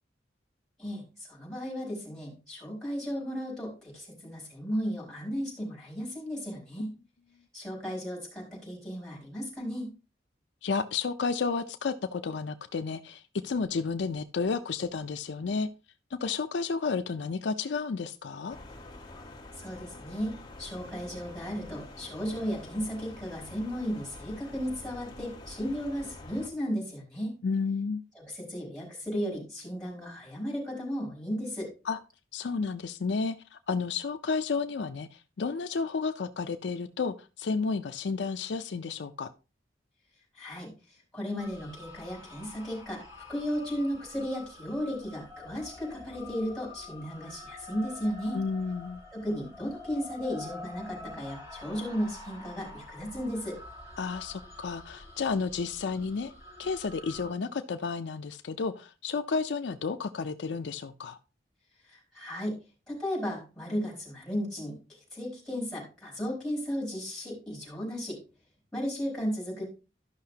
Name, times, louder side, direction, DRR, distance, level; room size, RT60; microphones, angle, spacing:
voice 1, 0.8-6.9 7.5-9.9 19.6-27.3 28.1-31.7 40.4-40.7 41.1-48.4 49.1-53.6 61.9-62.6 62.9-68.2 68.7-69.6, equal, ahead, -6 dB, 4.5 m, -35 dB
voice 2, 10.6-15.7 16.1-18.6 27.4-28.0 31.8-32.0 32.3-39.3 48.3-49.0 54.0-56.3 56.6-61.2, left 4 dB, 70° left, 9 dB, 0.5 m, -32 dB
sound 1, 18.5-26.5, left 2 dB, 25° left, 1.3 m, -47 dB
sound 2, 41.4-57.3, left 2 dB, 15° right, 4.3 m, -47 dB
13.0 x 5.7 x 2.8 m, 0.31 s
head